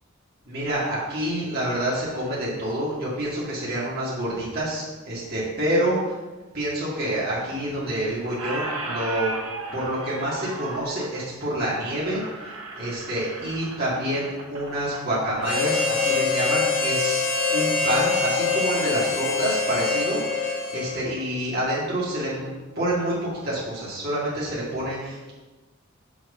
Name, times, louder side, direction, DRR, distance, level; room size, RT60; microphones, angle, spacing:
voice 1, 0.4-6.2 6.5-9.3 9.7-12.2 12.8-25.3, right 1 dB, 45° right, -7 dB, 2.3 m, -27 dB
Squeak, 7.4-8.0 8.2-15.9, right 2 dB, 80° right, 1.2 m, -36 dB
Harmonica, 15.4-21.2, left 4 dB, 65° left, 1.5 m, -24 dB
6.3 x 5.9 x 5.6 m, 1.2 s
head